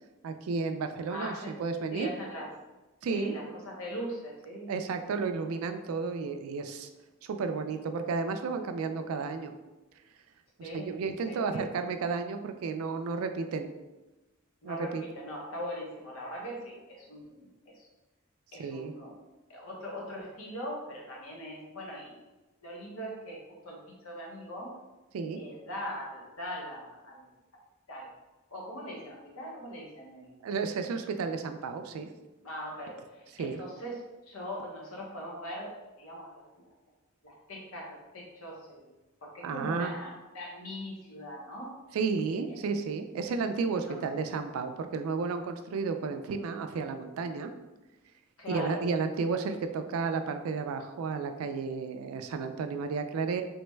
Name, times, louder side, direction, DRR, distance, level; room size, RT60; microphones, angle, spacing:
voice 1, 0.2-2.1 3.0-3.3 4.7-6.9 7.2-9.5 10.7-13.7 14.6-15.0 18.6-18.9 25.1-25.4 30.4-32.1 33.4-33.6 39.4-39.9 41.9-47.5 48.5-53.4, right 4 dB, 80° right, 7 dB, 0.3 m, -32 dB
voice 2, 1.1-1.5 1.9-2.5 3.1-4.8 10.6-10.9 11.3-11.6 14.6-17.9 18.5-19.1 19.5-22.2 22.6-24.8 25.4-27.3 27.9-28.1 28.5-30.3 32.4-36.3 36.6-36.7 37.2-38.9 39.2-41.8 42.5-42.6 43.7-44.2 48.4-48.8, equal, 80° left, -2 dB, 0.9 m, -41 dB
3.3 x 2.2 x 3.1 m, 1.1 s
head